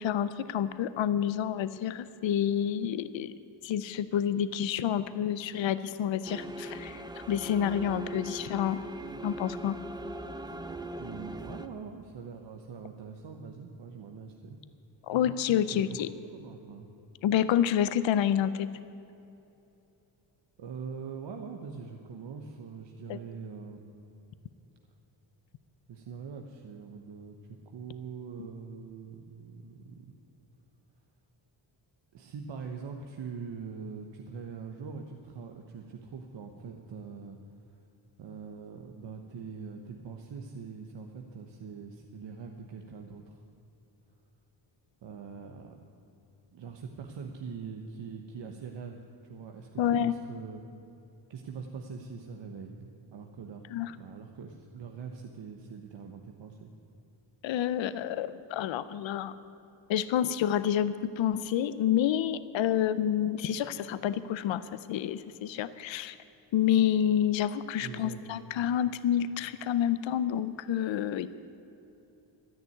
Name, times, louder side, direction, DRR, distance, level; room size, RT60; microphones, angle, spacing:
voice 1, 0.0-3.3 3.6-8.8 9.2-9.8 15.0-16.1 17.2-18.7 23.1-23.2 49.8-50.1 53.7-53.9 57.4-59.3 59.9-64.6 64.9-66.2 66.5-71.3, left 10 dB, 75° left, 14 dB, 0.7 m, -28 dB
sound 1, 6.2-11.7, right 1 dB, 10° right, 0.7 m, -40 dB
voice 2, 11.0-14.6 15.7-15.8 16.2-16.9 20.6-23.9 25.9-30.2 32.1-37.4 38.2-43.4 45.0-45.8 46.5-50.6 51.3-53.7 53.9-56.7 67.8-68.5, right 5 dB, 65° right, 3 dB, 1.2 m, -43 dB
12.5 x 10.5 x 9.4 m, 2.8 s
cardioid pair, 110°, 46 cm